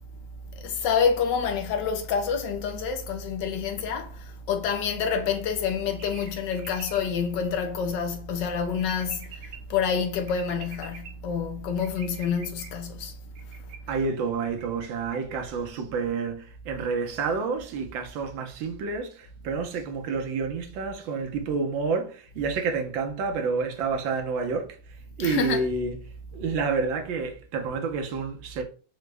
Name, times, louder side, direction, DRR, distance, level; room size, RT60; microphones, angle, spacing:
voice 1, 0.6-13.2 13.5-13.6 25.2-25.6, left 6 dB, 75° left, 1.2 m, -28 dB
sound 1, 6.0-7.0 8.8-9.6 10.3-11.1 11.8-12.7 13.3-13.9 14.4-14.9 15.1-15.5, right 6 dB, 60° right, 0.9 m, -45 dB
voice 2, 13.9-24.8 25.2-26.0 26.3-28.6, right 4 dB, 80° right, 1.5 m, -29 dB
4.8 x 2.1 x 3.3 m
omnidirectional pair, 2.1 m